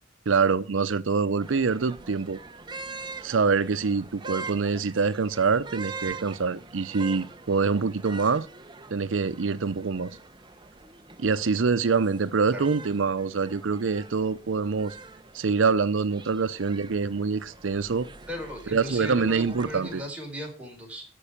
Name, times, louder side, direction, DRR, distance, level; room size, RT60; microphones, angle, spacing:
voice 1, 0.3-2.4 3.2-8.5 8.9-10.2 11.2-15.0 15.3-18.1 18.7-20.0, right 5 dB, 90° right, 0.6 m, -25 dB
sound 1, 1.4-20.1, right 4 dB, 25° right, 0.8 m, -44 dB
voice 2, 18.3-21.0, equal, 5° right, 4.3 m, -37 dB
13.5 x 5.4 x 8.5 m
head